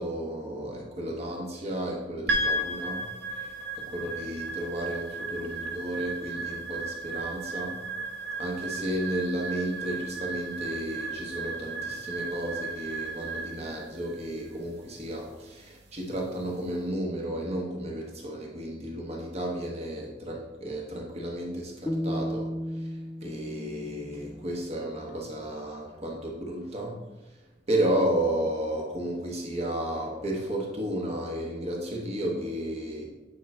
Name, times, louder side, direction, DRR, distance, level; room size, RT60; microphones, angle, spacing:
voice 1, 0.0-3.1 3.4-7.8 8.4-22.5 23.2-27.0 27.7-33.1, right 1 dB, 40° right, -1 dB, 1.1 m, -32 dB
sound 1, 2.3-16.7, right 2 dB, 70° right, 0.8 m, -35 dB
sound 2, 21.9-25.0, equal, 10° left, 0.4 m, -34 dB
8.8 x 3.0 x 4.3 m, 1.0 s
head